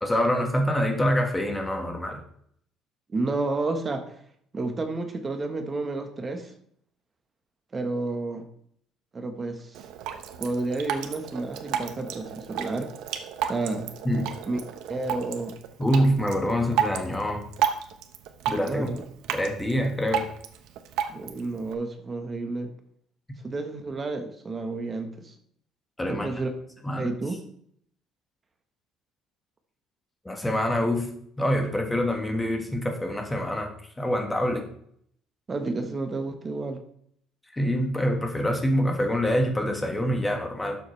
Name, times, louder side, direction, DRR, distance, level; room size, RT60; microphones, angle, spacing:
voice 1, 0.0-2.2 14.0-14.2 15.8-17.4 18.5-18.9 19.3-20.2 26.0-26.3 26.8-27.1 30.2-31.1 31.4-33.7 34.0-34.6 37.5-40.8, equal, 10° left, 3 dB, 1.5 m, -25 dB
voice 2, 3.1-4.2 4.5-6.5 7.7-8.5 9.1-9.8 10.4-12.9 13.5-13.9 14.5-14.6 14.9-15.5 18.6-19.0 21.1-22.7 23.4-25.3 26.1-26.5 27.0-27.4 35.5-36.8, right 3 dB, 20° right, 6 dB, 1.2 m, -30 dB
Drip, 9.7-21.7, right 9 dB, 80° right, 1.0 m, -33 dB
12.0 x 7.3 x 3.2 m, 0.66 s
cardioid pair, 150°, 0 cm